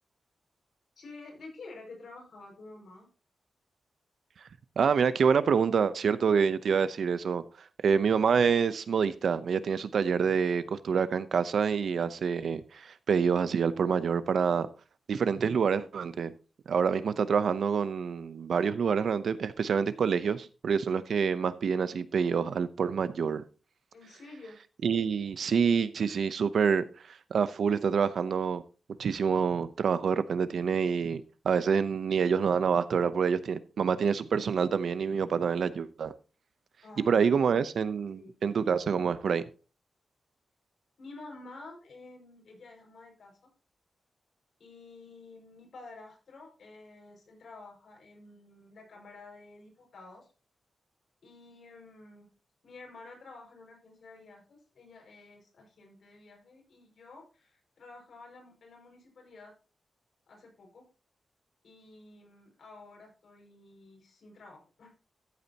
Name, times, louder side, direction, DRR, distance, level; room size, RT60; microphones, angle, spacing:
voice 1, 1.0-3.1 23.9-24.6 36.8-37.6 38.1-38.3 41.0-43.3 44.6-50.3 51.2-52.3 52.6-59.5 60.3-60.8 61.6-64.9, left 3 dB, 70° left, 5.5 m, -50 dB
voice 2, 4.8-7.4 7.8-14.7 15.1-16.3 16.7-23.4 24.8-28.6 29.0-36.1 37.1-39.4, right 6 dB, 75° right, 0.7 m, -27 dB
13.5 x 8.4 x 2.9 m
wide cardioid pair, 145°, 0 cm